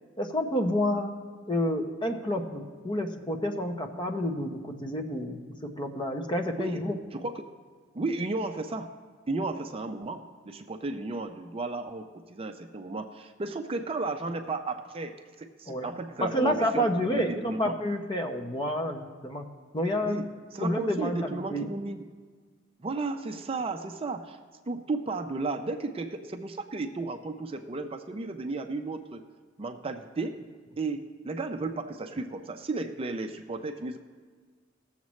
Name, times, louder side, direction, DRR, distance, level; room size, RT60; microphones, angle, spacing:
voice 1, 0.2-1.1 1.5-5.4 5.8-7.0 15.7-15.9 16.2-19.5 19.7-20.2 20.6-21.7, equal, 25° left, 4 dB, 0.8 m, -29 dB
voice 2, 7.1-7.5 7.9-8.9 9.3-17.8 20.0-20.3 20.5-22.1 22.8-24.4 24.7-29.2 29.6-30.4 30.8-34.0, right 3 dB, 30° right, 6 dB, 0.5 m, -34 dB
18.0 x 7.3 x 3.1 m, 1.5 s
head